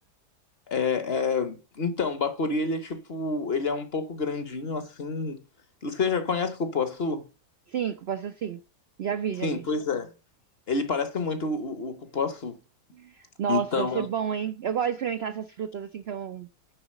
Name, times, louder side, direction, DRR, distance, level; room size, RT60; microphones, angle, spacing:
voice 1, 0.7-5.4 5.8-7.2 9.4-10.1 10.7-12.6 13.5-14.1, left 4 dB, 45° left, 1.0 m, -28 dB
voice 2, 7.7-8.6 9.0-9.7 12.9-16.5, right 8 dB, 70° right, 0.5 m, -30 dB
9.6 x 4.0 x 6.3 m
omnidirectional pair, 1.8 m